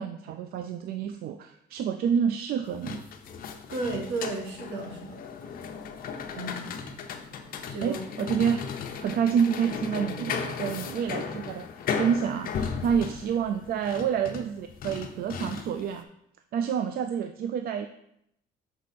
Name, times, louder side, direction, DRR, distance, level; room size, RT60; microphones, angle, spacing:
voice 1, 0.0-3.0 7.8-8.7 9.0-16.1 16.5-17.9, right 7 dB, 65° right, 8 dB, 0.4 m, -28 dB
sound 1, 2.7-15.9, left 6 dB, 60° left, 0.8 m, -36 dB
voice 2, 3.7-5.2 6.3-6.7 7.7-8.0, right 2 dB, 80° right, 1 dB, 1.7 m, -33 dB
6.6 x 4.8 x 4.2 m, 0.76 s
cardioid pair, 110°, 17 cm